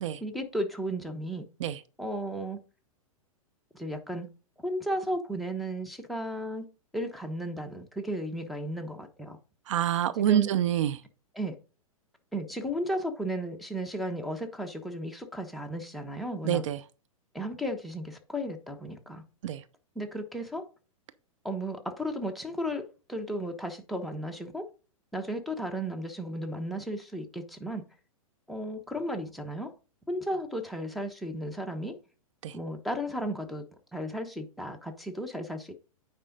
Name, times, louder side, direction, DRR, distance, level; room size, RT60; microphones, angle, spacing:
voice 1, 0.2-1.4 2.0-2.6 3.7-4.3 4.6-6.7 6.9-9.4 10.3-10.5 11.3-11.6 12.3-16.6 17.3-19.2 19.9-20.6 21.4-24.7 25.1-27.8 28.5-29.7 30.1-32.0 32.5-33.6 33.9-35.7, equal, ahead, 1.1 m, -34 dB
voice 2, 9.7-11.0 16.4-16.8 19.4-19.6 32.4-32.6, right 10 dB, 55° right, 0.6 m, -26 dB
9.0 x 4.9 x 4.0 m
hypercardioid pair, 115°, 18 cm